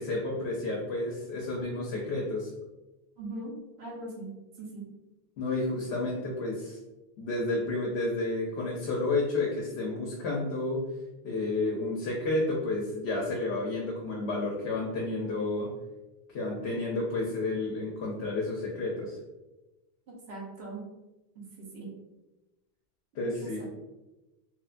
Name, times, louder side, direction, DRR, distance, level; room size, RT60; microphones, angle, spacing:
voice 1, 0.0-2.5 5.4-6.8 7.2-10.8 11.2-15.7 16.3-19.2 23.1-23.7, left 2 dB, 85° left, -2 dB, 0.9 m, -31 dB
voice 2, 3.2-4.3 4.6-4.9 20.1-20.8 21.4-21.9 23.2-23.7, right 2 dB, 80° right, -4 dB, 1.0 m, -41 dB
3.0 x 2.1 x 2.4 m, 1.0 s
omnidirectional pair, 1.1 m